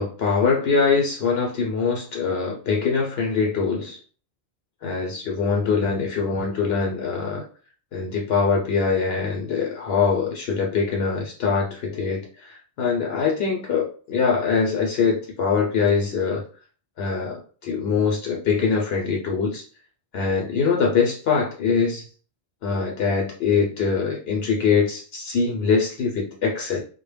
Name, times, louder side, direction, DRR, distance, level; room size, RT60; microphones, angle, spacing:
voice 1, 0.0-4.0 4.8-7.5 7.9-16.4 17.0-19.6 20.1-22.1 22.6-26.8, left 5 dB, 75° left, -1 dB, 0.8 m, -23 dB
2.1 x 2.0 x 3.2 m, 0.40 s
omnidirectional pair, 1.1 m